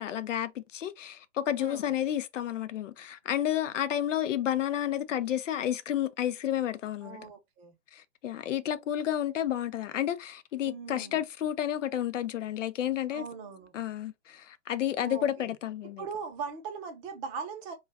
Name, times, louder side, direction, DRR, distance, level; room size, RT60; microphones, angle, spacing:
voice 1, 0.0-7.3 7.9-13.2 13.7-16.0, left 11 dB, 80° left, 0.6 m, -31 dB
voice 2, 1.6-1.9 7.0-7.7 10.6-11.2 13.1-13.8 15.0-15.5 16.0-17.7, right 6 dB, 25° right, 0.7 m, -40 dB
2.3 x 2.2 x 3.3 m
hypercardioid pair, 140°, 37 cm